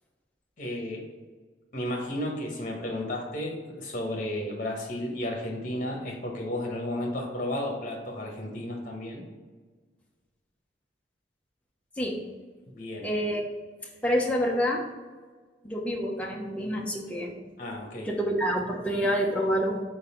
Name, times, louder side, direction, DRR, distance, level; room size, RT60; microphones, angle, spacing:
voice 1, 0.6-1.0 1.7-9.2 12.7-13.1 17.6-18.1, left 1 dB, 45° left, 0 dB, 1.3 m, -33 dB
voice 2, 13.0-13.5 14.0-14.9 15.6-17.3 18.0-19.8, equal, 10° left, -1 dB, 0.8 m, -27 dB
4.6 x 4.0 x 5.2 m, 1.4 s
head